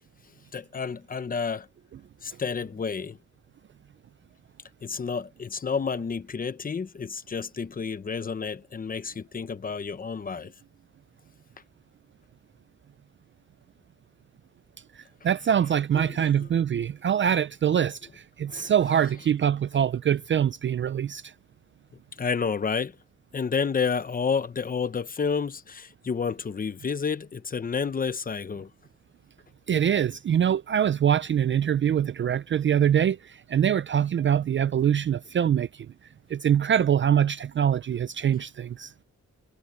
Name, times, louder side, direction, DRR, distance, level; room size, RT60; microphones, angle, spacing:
voice 1, 0.5-1.7 2.2-3.2 4.8-10.5 16.0-16.3 18.5-18.7 22.2-23.0 23.3-28.7, left 5 dB, 30° left, 0.9 m, -30 dB
voice 2, 14.9-21.3 29.7-35.9 36.3-38.9, right 9 dB, 40° right, 0.4 m, -24 dB
wide cardioid pair, 150°, 29 cm